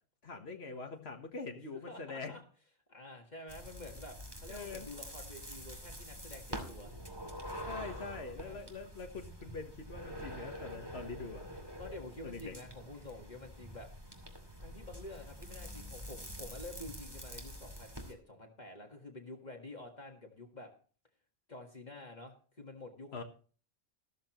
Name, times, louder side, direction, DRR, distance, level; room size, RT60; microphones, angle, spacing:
voice 1, 0.2-2.3 4.5-4.9 7.7-11.4 12.2-12.5 23.1-23.2, left 4 dB, 75° left, 4 dB, 1.6 m, -44 dB
voice 2, 1.7-2.4 2.9-6.9 8.3-8.6 11.8-13.9 14.6-20.7 21.5-23.2, left 2 dB, 45° left, 2 dB, 1.8 m, -49 dB
sound 1, 3.5-18.1, equal, 20° right, 2.5 m, -46 dB
14.0 x 13.5 x 3.0 m, 0.40 s
omnidirectional pair, 1.1 m